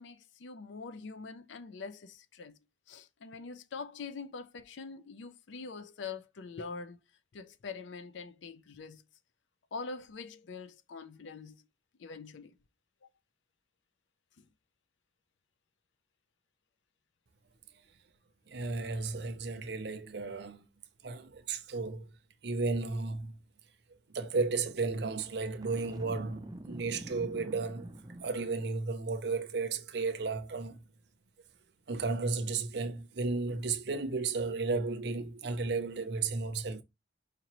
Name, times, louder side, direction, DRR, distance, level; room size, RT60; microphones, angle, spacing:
voice 1, 0.0-2.5 2.9-7.0 7.3-9.0 9.7-11.6 12.0-12.5, left 4 dB, 80° left, 0.4 m, -44 dB
voice 2, 18.5-20.7 21.0-22.1 22.4-23.4 24.1-30.8 31.9-36.8, right 4 dB, 60° right, 0.6 m, -34 dB
Boom, 25.6-28.8, right 1 dB, 20° right, 0.4 m, -46 dB
4.9 x 2.9 x 2.9 m
head